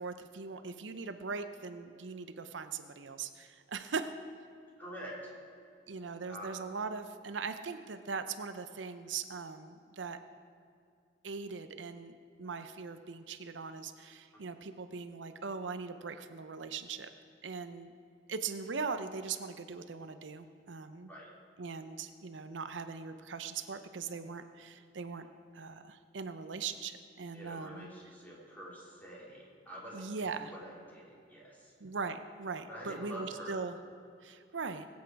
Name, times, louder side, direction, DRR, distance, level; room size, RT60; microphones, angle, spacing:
voice 1, 0.0-4.1 5.9-10.2 11.2-12.1 12.4-17.1 17.4-17.9 18.3-21.1 21.6-25.3 25.5-27.9 29.9-30.5 31.8-33.8 34.2-34.9, right 5 dB, 80° right, 10 dB, 0.7 m, -40 dB
voice 2, 4.8-5.3 6.3-6.5 21.1-21.3 27.3-31.7 32.7-33.7, right 1 dB, 10° left, -5 dB, 3.3 m, -47 dB
20.5 x 8.4 x 4.6 m, 2.5 s
head